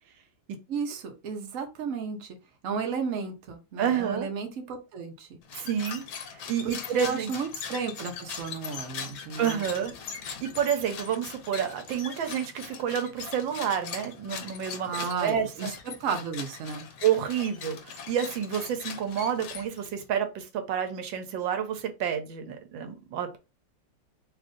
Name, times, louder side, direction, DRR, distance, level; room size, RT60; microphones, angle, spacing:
voice 1, 0.7-2.4 2.6-5.4 6.6-9.6 14.8-16.9, right 5 dB, 55° right, 0.9 m, -33 dB
voice 2, 3.8-4.3 5.5-6.0 6.5-7.3 9.4-9.9 10.2-15.7 17.0-23.4, right 8 dB, 85° right, 1.4 m, -29 dB
sound 1, 5.4-20.0, left 6 dB, 65° left, 1.2 m, -41 dB
3.3 x 2.5 x 3.7 m
omnidirectional pair, 2.1 m